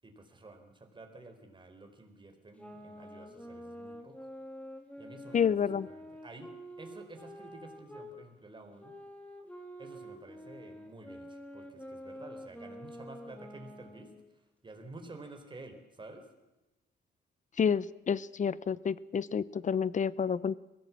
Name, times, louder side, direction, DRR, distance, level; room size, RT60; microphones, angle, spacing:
voice 1, 0.0-4.3 5.0-6.5 6.8-9.0 9.8-16.3, right 2 dB, 25° right, 5 dB, 4.3 m, -51 dB
sound 1, 2.6-8.1 8.8-14.3, equal, 5° left, 3.4 m, -47 dB
voice 2, 5.3-5.9 17.6-20.6, left 7 dB, 40° left, 19 dB, 0.7 m, -29 dB
22.0 x 16.5 x 7.6 m, 1.0 s
cardioid pair, 90°, 20 cm